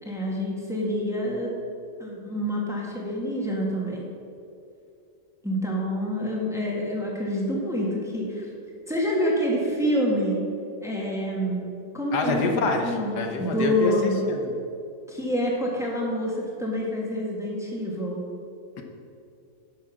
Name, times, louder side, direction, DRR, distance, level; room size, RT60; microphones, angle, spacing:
voice 1, 0.0-1.5 2.0-4.0 5.4-8.4 8.9-10.4 10.8-11.7 11.9-14.2 15.1-18.2, equal, ahead, -3 dB, 1.7 m, -27 dB
voice 2, 12.1-14.5, left 3 dB, 80° left, 3 dB, 1.6 m, -26 dB
11.5 x 6.3 x 5.9 m, 2.6 s
omnidirectional pair, 1.7 m